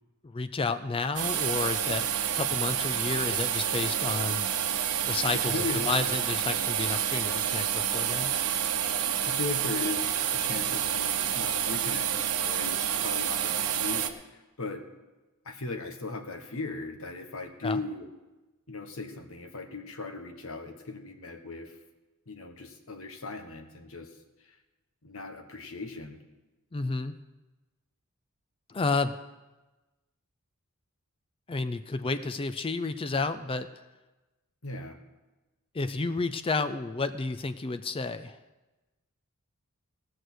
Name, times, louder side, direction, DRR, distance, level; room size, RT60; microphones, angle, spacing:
voice 1, 0.2-2.1 2.3-4.5 5.1-8.3 17.6-17.8 26.7-27.2 28.7-29.2 31.5-33.7 35.7-38.4, left 3 dB, 25° left, 10 dB, 0.4 m, -31 dB
sound 1, 1.2-14.1, right 9 dB, 80° right, 0.9 m, -29 dB
voice 2, 5.3-6.0 9.2-14.8 15.4-18.1 18.7-21.8 22.3-24.1 24.4-24.5 25.0-26.2 34.6-35.0, left 3 dB, 65° left, 5 dB, 1.3 m, -38 dB
18.0 x 6.5 x 6.2 m, 1.1 s
head